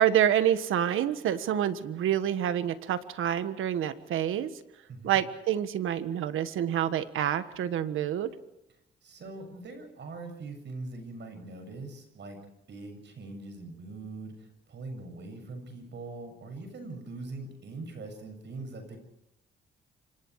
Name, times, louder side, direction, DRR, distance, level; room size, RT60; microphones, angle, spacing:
voice 1, 0.0-4.5 5.0-8.3, right 10 dB, 85° right, 11 dB, 1.5 m, -27 dB
voice 2, 4.9-5.2 9.0-19.0, right 3 dB, 60° right, 6 dB, 7.7 m, -42 dB
30.0 x 25.5 x 4.9 m, 0.79 s
cardioid pair, 85°, 20 cm